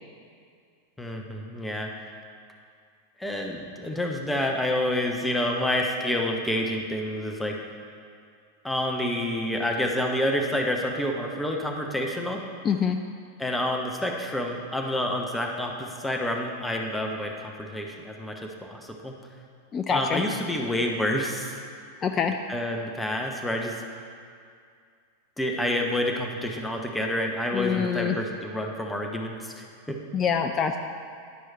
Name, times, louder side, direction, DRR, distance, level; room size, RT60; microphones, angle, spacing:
voice 1, 1.0-2.0 3.2-7.6 8.6-12.5 13.4-19.2 19.9-21.6 22.5-23.8 25.4-30.0, left 1 dB, 5° left, 1 dB, 0.8 m, -28 dB
voice 2, 12.6-13.0 19.7-20.2 22.0-22.3 27.5-28.2 30.1-30.8, left 6 dB, 25° left, 5 dB, 0.3 m, -25 dB
10.5 x 4.7 x 4.3 m, 2.3 s
figure-of-eight pair, 90°, 0 cm